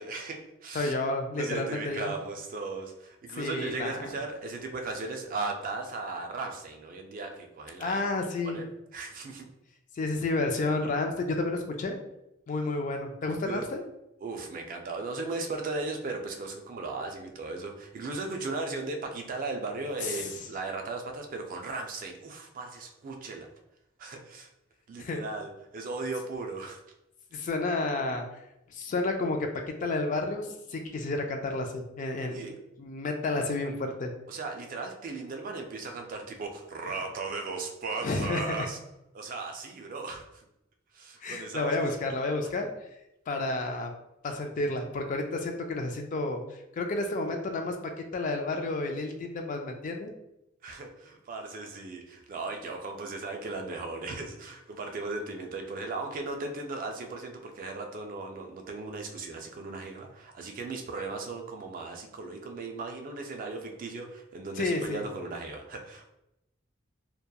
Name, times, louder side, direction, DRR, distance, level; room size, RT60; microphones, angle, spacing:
voice 1, 0.0-0.9 1.3-8.1 8.4-9.5 13.5-13.7 14.2-23.5 24.0-24.5 24.9-26.8 32.3-32.6 34.3-38.8 39.1-40.4 40.9-42.4 50.6-66.1, right 3 dB, 45° right, 3 dB, 0.3 m, -37 dB
voice 2, 0.7-2.1 3.3-4.0 7.8-8.6 9.9-12.0 12.5-13.8 20.0-20.4 25.0-25.2 27.3-28.2 28.7-29.5 29.8-32.4 32.8-34.1 38.0-38.7 41.2-42.7 43.3-43.9 44.2-50.1 64.6-65.0, left 2 dB, 40° left, 4 dB, 0.3 m, -31 dB
2.7 x 2.2 x 2.2 m, 0.86 s
head